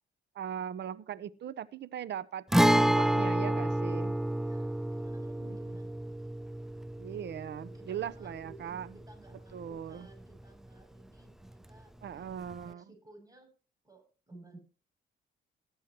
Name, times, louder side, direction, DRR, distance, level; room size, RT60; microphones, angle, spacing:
voice 1, 0.3-2.4 2.7-4.2 7.0-9.0 9.5-10.1 12.0-12.8, right 9 dB, 60° right, 0.9 m, -39 dB
Guitar, 2.5-10.1 10.4-10.5 12.5-12.6, right 1 dB, ahead, 0.5 m, -29 dB
voice 2, 4.3-6.2 7.6-13.5 13.8-14.6, right 2 dB, 20° right, 7.8 m, -56 dB
19.0 x 8.3 x 3.1 m
cardioid pair, 90°, 20 cm